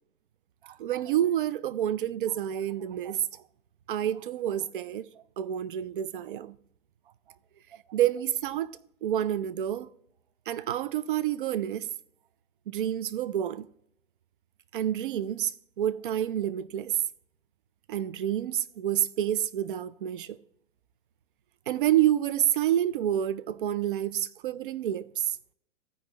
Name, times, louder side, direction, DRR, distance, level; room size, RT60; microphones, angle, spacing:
voice 1, 0.6-3.2 3.9-5.1 5.4-6.5 7.9-9.9 10.5-11.9 12.7-13.7 14.7-15.5 15.8-17.0 17.9-20.4 21.7-25.4, right 11 dB, 40° right, 0.4 m, -28 dB
14.5 x 5.2 x 3.1 m
figure-of-eight pair, 115°, 42 cm